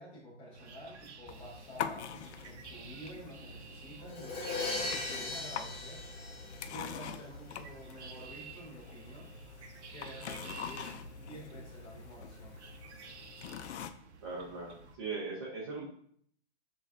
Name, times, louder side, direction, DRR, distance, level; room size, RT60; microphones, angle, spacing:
voice 1, 0.0-6.0 6.6-9.3 9.9-12.6, equal, 15° left, -5 dB, 0.7 m, -50 dB
sound 1, 0.5-15.0, right 5 dB, 75° right, 0.7 m, -53 dB
sound 2, 1.3-13.9, left 7 dB, 70° left, 0.5 m, -45 dB
Crash cymbal, 4.1-7.0, left 3 dB, 50° left, 1.5 m, -38 dB
voice 2, 14.2-15.9, right 4 dB, 25° right, -5 dB, 0.5 m, -39 dB
7.1 x 2.4 x 2.4 m, 0.63 s
hypercardioid pair, 170°, 34 cm